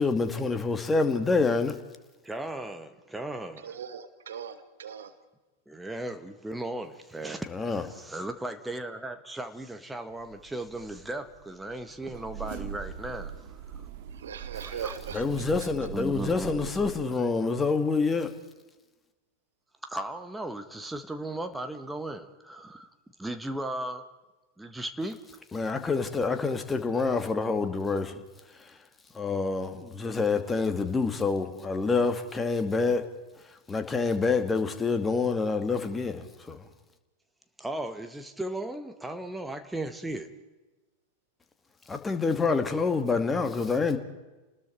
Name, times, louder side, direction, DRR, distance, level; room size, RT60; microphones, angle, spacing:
voice 1, 0.0-1.8 7.5-7.8 15.1-18.3 25.5-28.2 29.1-33.1 33.7-36.6 41.9-44.0, left 4 dB, 15° left, 2.2 m, -27 dB
voice 2, 2.2-3.8 5.7-13.9 14.6-14.9 15.9-16.6 19.8-22.9 23.2-24.0 24.6-25.2 37.6-40.3, right 1 dB, 5° right, 1.6 m, -36 dB
voice 3, 3.6-5.1 14.2-15.2, right 7 dB, 65° right, 1.5 m, -39 dB
sound 1, 10.1-17.0, right 8 dB, 50° right, 2.2 m, -42 dB
29.5 x 20.0 x 4.6 m
figure-of-eight pair, 90°, 0 cm